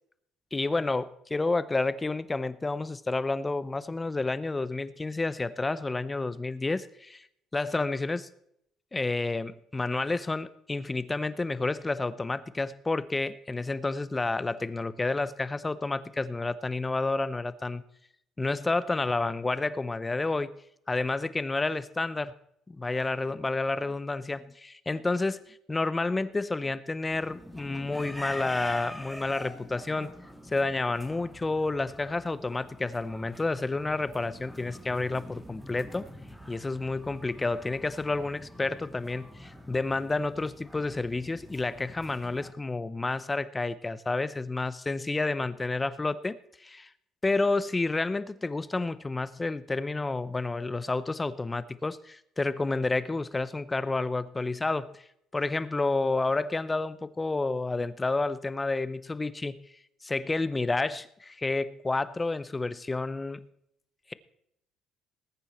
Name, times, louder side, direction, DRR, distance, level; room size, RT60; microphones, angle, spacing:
voice 1, 0.5-7.3 7.5-8.3 8.9-17.8 18.4-20.6 20.9-22.3 22.7-30.1 30.5-36.1 36.5-46.9 47.2-55.0 55.3-59.6 60.0-63.5, left 3 dB, 20° left, 16 dB, 0.7 m, -30 dB
sound 1, 27.1-42.5, equal, ahead, 1.7 m, -45 dB
20.0 x 9.2 x 4.3 m, 0.75 s
cardioid pair, 100°, 0 cm